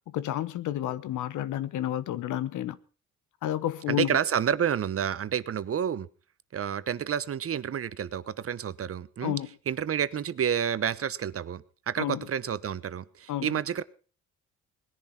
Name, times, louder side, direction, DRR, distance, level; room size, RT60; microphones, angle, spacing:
voice 1, 0.0-2.8 3.4-4.2 9.2-9.5 12.0-12.3 13.3-13.5, left 12 dB, 80° left, 1.2 m, -30 dB
voice 2, 3.9-6.1 6.5-9.4 9.7-13.8, right 8 dB, 50° right, 1.1 m, -29 dB
20.0 x 10.5 x 5.9 m
cardioid pair, 90°, 30 cm